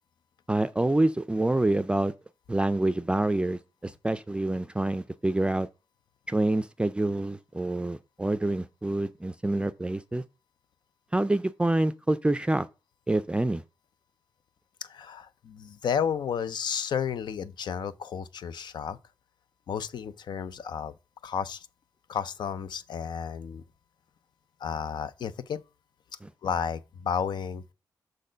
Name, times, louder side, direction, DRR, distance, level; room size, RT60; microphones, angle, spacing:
voice 1, 0.5-2.1 2.5-5.7 6.3-10.2 11.1-12.7 13.1-13.6, right 2 dB, 15° right, 0.4 m, -27 dB
voice 2, 14.8-19.0 19.7-20.9 21.2-21.7 22.1-23.6 24.6-25.6 26.4-27.6, left 7 dB, 75° left, 0.6 m, -32 dB
6.4 x 4.2 x 5.1 m
cardioid pair, 75°, 8 cm